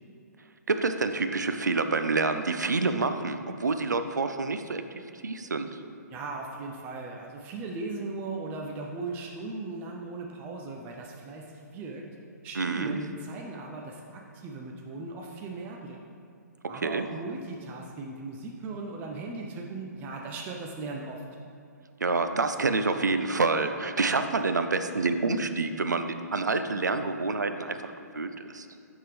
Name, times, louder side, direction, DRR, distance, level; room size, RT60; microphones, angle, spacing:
voice 1, 0.7-4.8 5.2-5.8 12.6-13.0 16.8-17.1 22.0-28.7, right 3 dB, 80° right, 8 dB, 0.4 m, -27 dB
voice 2, 6.1-12.1 12.4-16.0 16.7-21.2, right 3 dB, 20° right, 0 dB, 0.4 m, -38 dB
10.5 x 3.6 x 3.3 m, 2.3 s
figure-of-eight pair, 130°, 9 cm